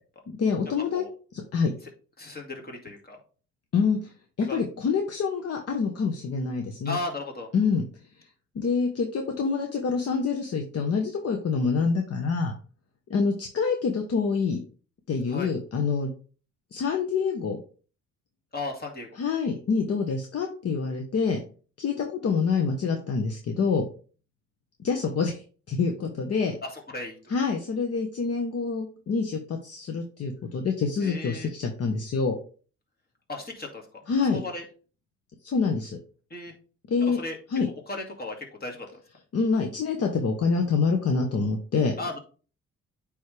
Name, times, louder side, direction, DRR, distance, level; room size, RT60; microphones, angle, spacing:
voice 1, 0.3-1.0 1.3-1.7 3.7-4.1 4.4-7.0 7.5-7.8 8.5-12.5 13.1-14.6 15.1-16.1 16.7-17.6 19.2-21.4 21.8-23.8 24.8-26.6 27.3-32.4 34.1-34.4 35.4-36.0 36.9-37.2 37.5-37.7 39.3-41.9, left 5 dB, 55° left, 3 dB, 1.0 m, -26 dB
voice 2, 2.2-3.2 4.5-4.6 6.8-7.5 15.3-15.5 18.5-19.1 26.6-27.3 31.0-31.5 33.3-33.8 34.3-34.6 36.3-36.5 37.0-37.4 37.9-38.9 42.0-42.2, left 2 dB, 30° left, 1 dB, 2.2 m, -35 dB
9.1 x 3.7 x 3.3 m, 0.38 s
cardioid pair, 90°, 30 cm